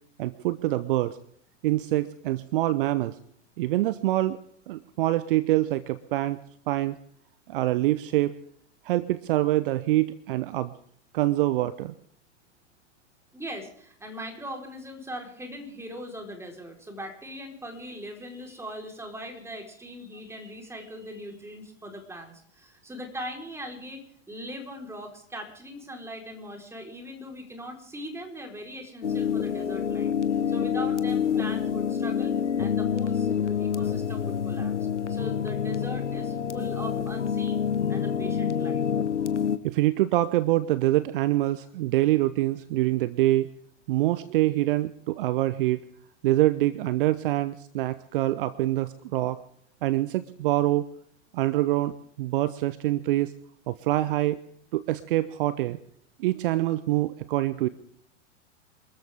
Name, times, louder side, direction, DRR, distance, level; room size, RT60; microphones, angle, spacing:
voice 1, 0.2-1.2 1.6-3.2 3.6-4.4 4.7-6.4 6.7-7.0 7.5-8.3 8.8-10.7 11.1-11.9 39.6-43.5 43.9-45.8 46.2-49.4 49.8-50.9 51.3-53.3 53.7-54.4 54.7-55.8 56.2-57.7, right 16 dB, 50° right, 16 dB, 0.9 m, -25 dB
voice 2, 13.3-30.1 30.5-34.7 35.1-37.6 37.9-38.8, equal, 5° right, 3 dB, 4.2 m, -40 dB
sound 1, 29.0-39.6, left 7 dB, 75° left, 1.2 m, -27 dB
28.0 x 14.0 x 3.6 m, 0.64 s
figure-of-eight pair, 95°, 35 cm